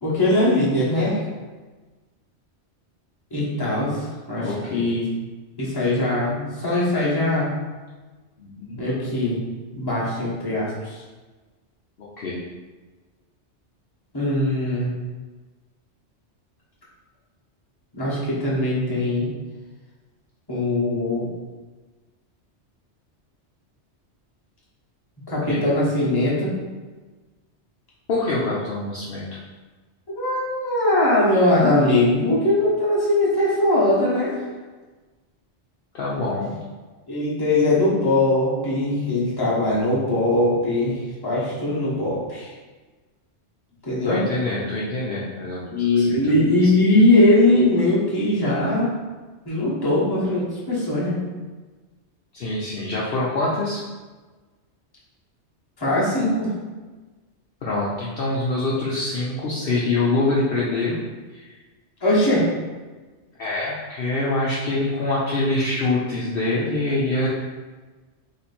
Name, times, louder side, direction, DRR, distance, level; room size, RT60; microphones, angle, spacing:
voice 1, 0.0-1.2 3.3-5.1 5.6-7.5 8.8-9.4 9.7-11.0 14.1-14.9 17.9-19.3 20.5-21.3 25.3-26.5 30.2-34.3 37.1-40.9 41.2-42.5 43.9-44.2 45.7-48.9 49.4-51.2 55.8-56.5 62.0-62.5, left 1 dB, 20° left, -7 dB, 1.1 m, -20 dB
voice 2, 4.4-4.8 8.4-8.8 12.0-12.4 25.5-25.7 28.1-29.2 35.9-36.6 44.0-45.6 45.9-46.2 46.6-46.7 52.3-53.8 57.6-61.0 61.3-61.5 63.4-67.3, left 2 dB, 60° left, -6 dB, 0.8 m, -25 dB
3.2 x 2.9 x 4.1 m, 1.3 s
omnidirectional pair, 1.2 m